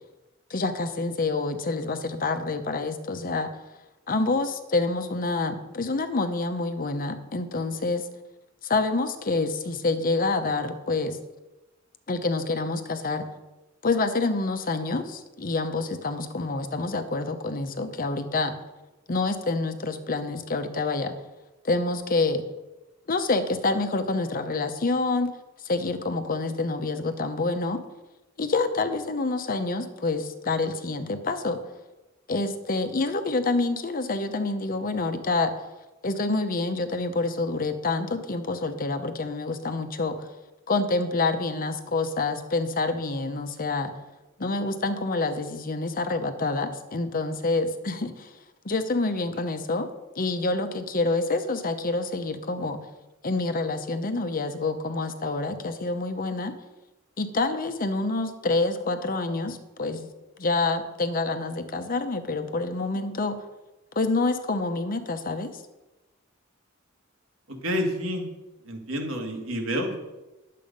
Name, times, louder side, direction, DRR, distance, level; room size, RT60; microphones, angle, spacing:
voice 1, 0.5-3.5 4.1-8.0 8.6-11.2 12.1-13.3 13.8-18.5 19.1-21.1 21.6-22.4 23.1-25.3 25.6-27.8 28.4-31.6 32.3-35.5 36.0-40.2 40.7-43.9 44.4-48.3 48.6-49.9 50.2-52.8 53.2-56.5 57.2-60.1 60.4-63.4 64.0-65.5, left 3 dB, 45° left, 9 dB, 0.8 m, -27 dB
voice 2, 67.5-68.3 68.6-70.0, equal, 75° right, 2 dB, 2.0 m, -29 dB
10.5 x 7.6 x 5.3 m, 1.1 s
head